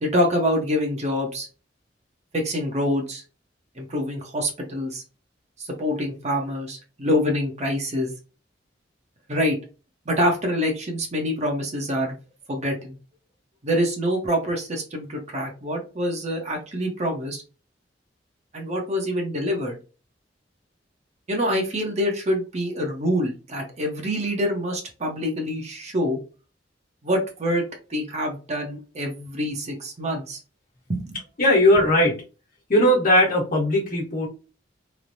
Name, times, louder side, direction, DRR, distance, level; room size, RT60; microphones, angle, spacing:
voice 1, 0.0-1.5 2.3-3.2 3.8-5.0 5.6-8.1 9.3-9.6 10.1-12.2 12.5-13.0 13.6-17.4 18.5-19.8 21.3-26.2 27.0-27.6 27.9-30.4 30.9-31.2, equal, 40° right, 1 dB, 0.8 m, -26 dB
voice 2, 31.4-32.2 32.7-34.3, left 1 dB, 50° left, -2 dB, 1.2 m, -18 dB
3.1 x 2.1 x 2.6 m, 0.33 s
head